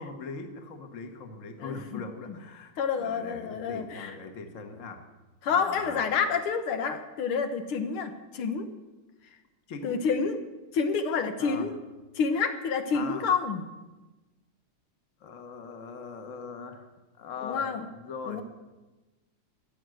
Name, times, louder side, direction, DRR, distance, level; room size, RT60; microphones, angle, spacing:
voice 1, 0.0-5.0 5.5-6.0 9.7-10.0 11.4-11.7 12.9-13.3 15.2-16.9 17.2-18.4, left 4 dB, 40° left, 6 dB, 1.5 m, -40 dB
voice 2, 1.6-2.0 2.8-4.1 5.4-8.7 9.8-10.4 10.7-11.7 12.2-13.6 17.4-17.9 18.3-18.4, left 5 dB, 85° left, 8 dB, 2.0 m, -28 dB
14.0 x 9.0 x 7.7 m, 1.1 s
omnidirectional pair, 2.3 m